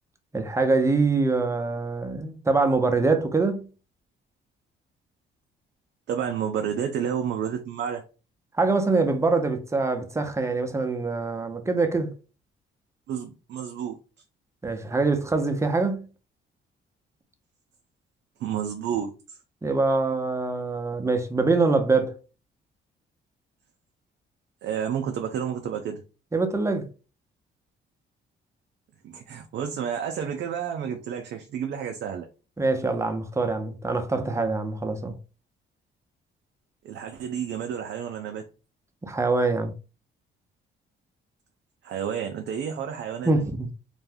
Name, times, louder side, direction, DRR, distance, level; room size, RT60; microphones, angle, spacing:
voice 1, 0.3-3.7 8.6-12.1 14.6-16.1 19.6-22.1 26.3-26.9 32.6-35.2 39.0-39.7 43.3-43.7, right 3 dB, 15° right, 0.5 m, -24 dB
voice 2, 6.1-8.0 13.1-14.0 18.4-19.4 24.6-26.0 29.0-32.3 36.8-38.4 41.8-43.5, right 8 dB, 65° right, 0.4 m, -30 dB
2.5 x 2.1 x 3.3 m
cardioid pair, 90°, 20 cm